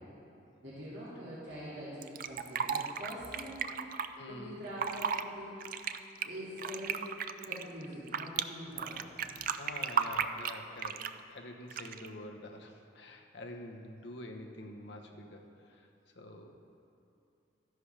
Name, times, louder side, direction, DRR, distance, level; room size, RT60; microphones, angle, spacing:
voice 1, 0.6-3.8 4.3-5.7 6.2-7.1 7.4-9.4, equal, 65° right, -10 dB, 2.4 m, -44 dB
Fill (with liquid), 2.0-4.1 4.7-5.2 5.6-8.4 8.8-11.2 11.7-12.1, right 7 dB, 45° right, 0.3 m, -34 dB
voice 2, 4.1-4.6 9.6-11.0 11.3-15.9 16.2-16.5, left 1 dB, 65° left, 3 dB, 1.0 m, -47 dB
13.0 x 11.0 x 3.4 m, 2.8 s
head